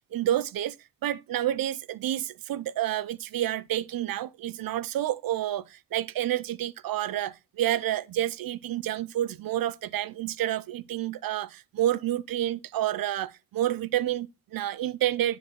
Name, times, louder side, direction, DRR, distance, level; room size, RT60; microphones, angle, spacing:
voice 1, 0.1-0.8 1.0-15.4, right 12 dB, 80° right, 0.5 m, -29 dB
7.7 x 6.6 x 4.3 m
cardioid pair, 50°, 34 cm